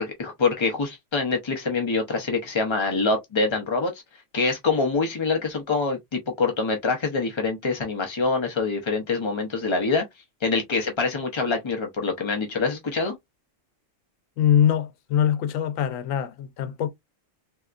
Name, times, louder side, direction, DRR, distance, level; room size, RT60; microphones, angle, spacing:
voice 1, 0.0-3.9 4.3-10.1 10.4-13.2, left 4 dB, 35° left, 0.4 m, -25 dB
voice 2, 14.4-16.9, left 10 dB, 85° left, 1.0 m, -23 dB
3.3 x 2.7 x 2.4 m
omnidirectional pair, 1.4 m